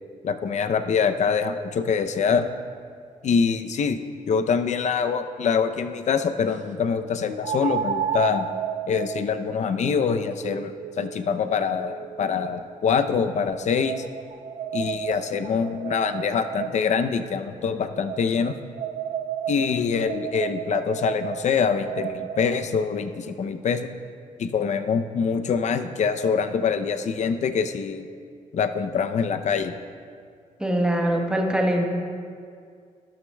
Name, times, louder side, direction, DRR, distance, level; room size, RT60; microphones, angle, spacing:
voice 1, 0.2-2.5 3.2-4.0 4.3-8.5 8.8-14.0 14.7-18.6 19.5-23.9 24.4-28.0 28.5-29.8, left 6 dB, 55° left, 9 dB, 0.6 m, -24 dB
sound 1, 4.8-4.9 7.4-12.6 13.3-17.0 18.1-22.6, right 8 dB, 60° right, 0.6 m, -33 dB
voice 2, 30.6-31.8, right 1 dB, 5° right, 1 dB, 1.2 m, -22 dB
12.5 x 11.5 x 2.3 m, 2.2 s
cardioid pair, 95°, 14 cm